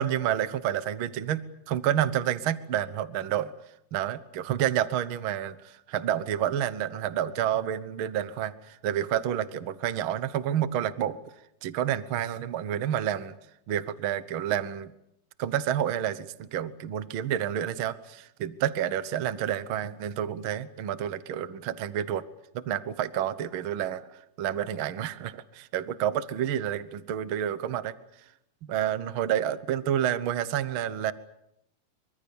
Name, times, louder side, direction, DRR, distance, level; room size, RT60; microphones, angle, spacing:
voice 1, 0.0-3.5 3.9-11.2 11.6-13.3 13.7-14.9 15.4-22.2 22.5-27.9 28.6-31.1, right 10 dB, 65° right, 14 dB, 1.3 m, -29 dB
26.5 x 24.0 x 7.1 m, 0.81 s
omnidirectional pair, 3.7 m